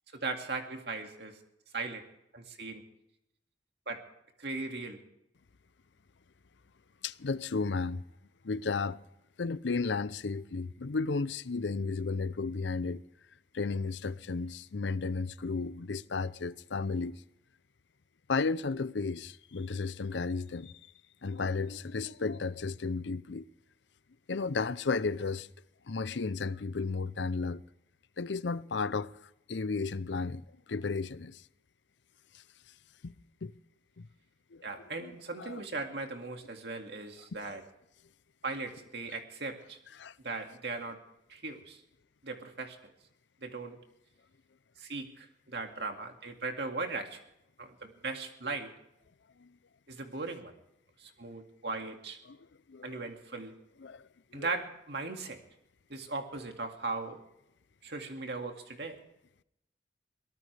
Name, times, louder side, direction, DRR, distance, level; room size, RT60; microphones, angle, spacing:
voice 1, 0.1-1.4 1.7-2.0 2.3-2.8 3.9-4.0 4.4-5.0 34.6-37.6 38.4-39.8 40.2-41.0 41.3-41.8 42.2-42.9 43.4-43.8 44.8-47.2 47.6-48.7 49.9-50.5 51.0-52.2 52.8-53.6 54.3-55.4 55.9-57.2 57.8-59.0, right 3 dB, 60° right, 2.2 m, -38 dB
voice 2, 7.0-8.0 8.4-9.0 9.4-13.0 13.5-17.2 18.3-20.7 21.2-23.4 24.3-25.5 25.9-27.6 28.2-29.1 29.5-30.4 30.7-31.4 33.0-33.1 33.4-33.5 34.0-34.1 34.5-34.6 35.0-35.1 35.4-35.6 40.0-40.1 49.4-49.5 52.3-52.4 52.7-53.0 53.8-54.0 54.3-54.5, left 4 dB, 75° left, 0.6 m, -33 dB
23.0 x 18.5 x 3.4 m
head